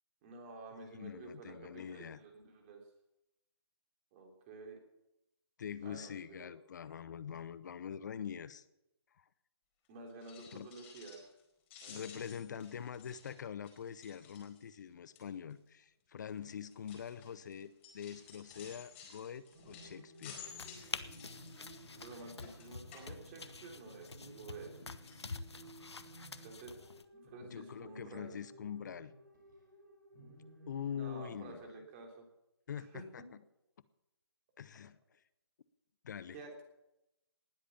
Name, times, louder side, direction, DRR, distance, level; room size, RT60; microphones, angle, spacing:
voice 1, 0.2-2.8 4.1-4.8 5.8-6.6 9.9-11.3 11.8-12.1 21.9-24.8 26.4-26.7 27.3-28.4 30.9-32.3 32.8-33.3 36.3-36.6, right 3 dB, 25° right, 2 dB, 3.5 m, -51 dB
voice 2, 0.9-2.2 5.6-8.6 9.2-9.3 10.5-10.7 11.9-20.4 20.8-20.9 27.5-29.1 30.7-31.7 32.7-33.2 34.6-35.0 36.0-36.4, left 8 dB, 45° left, 17 dB, 0.7 m, -44 dB
sound 1, 10.1-11.4 11.7-14.8 15.1-15.5 16.2-23.8 24.1-24.8 25.0-25.2 25.7-25.8 26.1-26.2, left 7 dB, 30° left, 4.6 m, -55 dB
sound 2, 19.5-31.5, right 1 dB, 45° right, 5.5 m, -57 dB
sound 3, 20.4-27.0, left 4 dB, 75° left, 1.1 m, -48 dB
19.5 x 8.4 x 7.2 m, 0.88 s
figure-of-eight pair, 145°, 14 cm